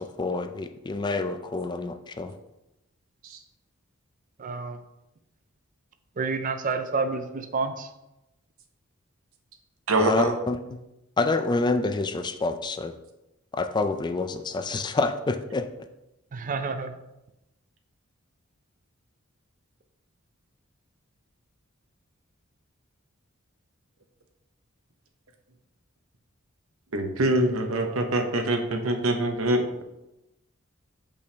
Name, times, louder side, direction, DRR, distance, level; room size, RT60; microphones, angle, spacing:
voice 1, 0.0-2.3 10.0-10.8 11.2-12.9 13.5-15.7, left 3 dB, 20° left, 9 dB, 0.4 m, -27 dB
voice 2, 4.4-4.8 6.2-7.9 16.3-17.0, right 4 dB, 40° right, 8 dB, 0.5 m, -29 dB
voice 3, 9.9-10.3 26.9-29.8, right 1 dB, 85° right, 5 dB, 0.9 m, -24 dB
6.8 x 5.3 x 3.4 m, 0.92 s
head